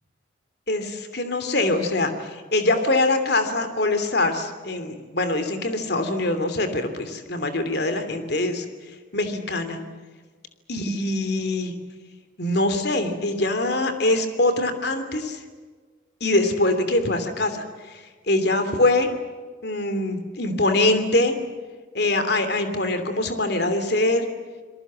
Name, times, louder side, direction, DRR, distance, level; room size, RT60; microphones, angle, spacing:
voice 1, 0.7-8.6 9.1-9.8 10.7-11.8 12.4-15.4 16.2-19.1 19.6-21.4 21.9-24.2, left 2 dB, 55° left, 9 dB, 2.9 m, -23 dB
28.0 x 22.0 x 7.6 m, 1.5 s
head